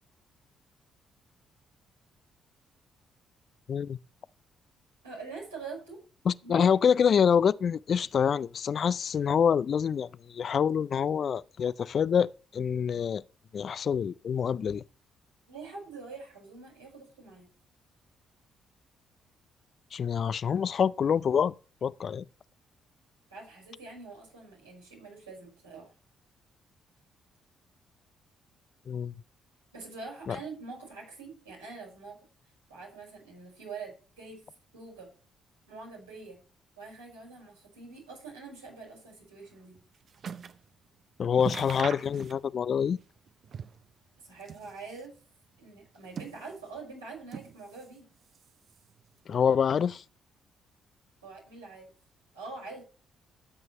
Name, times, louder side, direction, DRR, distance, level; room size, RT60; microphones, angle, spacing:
voice 1, 5.0-6.0 6.4-6.7 15.5-17.5 23.3-25.9 29.7-32.2 32.7-34.4 34.7-35.1 35.7-36.4 36.8-39.8 44.2-45.1 45.6-48.1 51.2-51.9 52.3-52.8, right 4 dB, 90° right, 5.5 m, -44 dB
voice 2, 6.3-13.2 13.5-14.8 19.9-21.5 21.8-22.2 28.9-29.1 30.3-30.4 41.2-43.0 49.3-50.0, left 7 dB, 50° left, 0.4 m, -26 dB
sound 1, 39.5-40.7 41.0-41.1 41.4-42.7 43.0-43.9 44.3-45.2 45.8-46.8 47.3-48.0 48.3-49.0 49.7-49.8, right 6 dB, 55° right, 0.7 m, -42 dB
13.5 x 7.9 x 3.2 m
hypercardioid pair, 45°, 0 cm